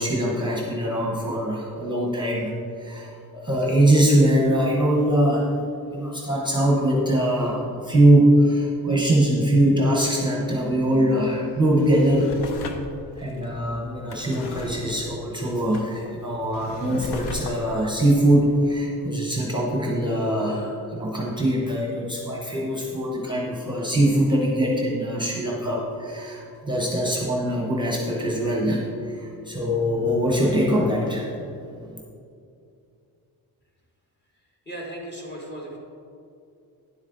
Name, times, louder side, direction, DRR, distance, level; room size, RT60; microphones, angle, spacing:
voice 1, 0.0-2.5 2.8-5.5 5.9-12.4 13.2-31.4 31.9-32.0, right 1 dB, 10° right, -2 dB, 0.9 m, -22 dB
Drawer open or close, 11.5-19.2 19.7-19.8, left 3 dB, 80° left, 0.8 m, -38 dB
voice 2, 34.6-35.8, right 1 dB, 25° left, -2 dB, 1.5 m, -36 dB
10.0 x 8.1 x 3.9 m, 2.5 s
wide cardioid pair, 165°, 39 cm